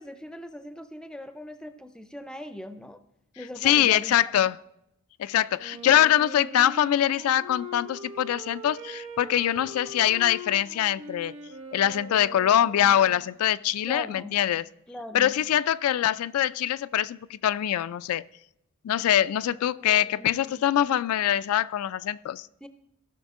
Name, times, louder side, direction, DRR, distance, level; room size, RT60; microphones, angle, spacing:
voice 1, 0.0-3.0 3.4-4.2 13.9-14.4 14.9-15.4 19.8-20.7 22.6-22.7, left 1 dB, 5° left, 0.4 m, -40 dB
voice 2, 3.6-4.6 5.2-11.3 11.7-14.6 15.1-18.2 18.8-22.4, left 11 dB, 80° left, 0.3 m, -23 dB
Wind instrument woodwind instrument, 5.6-13.3, equal, 60° right, 1.8 m, -42 dB
15.5 x 6.2 x 3.7 m
head